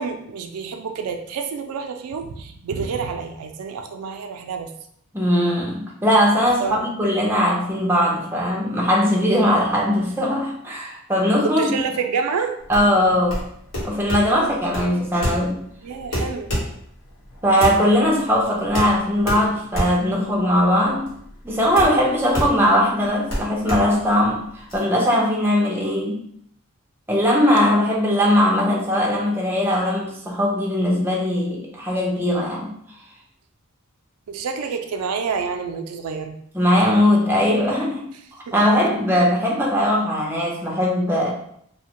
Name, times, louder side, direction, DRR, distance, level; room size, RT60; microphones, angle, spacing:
voice 1, 0.0-4.7 6.6-6.8 11.4-12.5 15.8-16.5 34.3-36.4, right 5 dB, 90° right, 5 dB, 0.3 m, -28 dB
voice 2, 5.1-11.7 12.7-13.5 13.8-15.6 17.4-21.1 21.4-26.2 27.1-32.7 36.5-38.1 38.5-41.3, equal, 10° right, -3 dB, 0.4 m, -20 dB
sound 1, 12.6-24.8, equal, 60° left, 1.0 m, -29 dB
2.7 x 2.1 x 2.9 m, 0.69 s
head